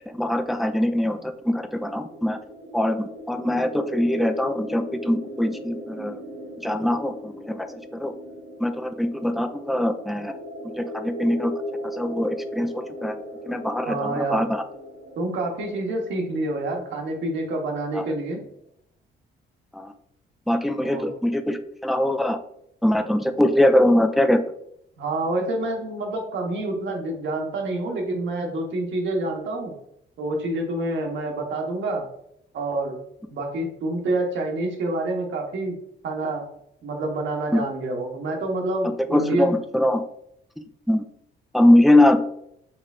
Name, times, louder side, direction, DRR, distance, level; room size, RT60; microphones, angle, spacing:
voice 1, 0.1-2.4 2.7-6.2 6.6-8.1 8.6-10.3 10.8-11.5 11.8-14.6 17.9-18.0 19.7-19.9 20.5-22.4 22.8-24.4 37.5-37.6 39.1-40.0 40.9-41.0 41.5-42.2, left 1 dB, ahead, 7 dB, 0.4 m, -22 dB
sound 1, 1.6-17.2, equal, 50° right, 1.2 m, -38 dB
voice 2, 13.9-14.5 15.2-18.4 20.8-21.1 25.0-29.7 30.2-32.1 32.5-33.0 33.3-35.8 36.0-36.4 36.8-39.5, right 2 dB, 70° right, 2 dB, 1.1 m, -27 dB
4.7 x 3.2 x 2.4 m, 0.74 s
cardioid pair, 90°, 20 cm